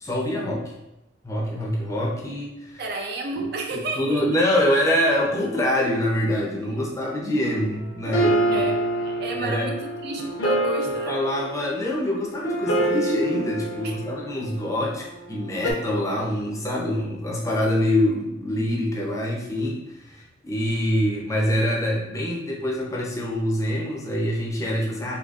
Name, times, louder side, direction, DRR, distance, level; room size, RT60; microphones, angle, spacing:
voice 1, 0.0-0.7 1.2-2.8 3.3-3.4 4.0-8.6 9.4-9.7 11.1-25.2, left 1 dB, 15° left, -3 dB, 0.5 m, -25 dB
voice 2, 2.8-4.4 8.2-11.2 13.8-14.0, right 2 dB, 55° right, 3 dB, 0.4 m, -32 dB
sound 1, 7.5-14.9 15.6-15.7, right 1 dB, 70° left, 0.6 m, -26 dB
4.0 x 2.7 x 2.4 m, 0.93 s
head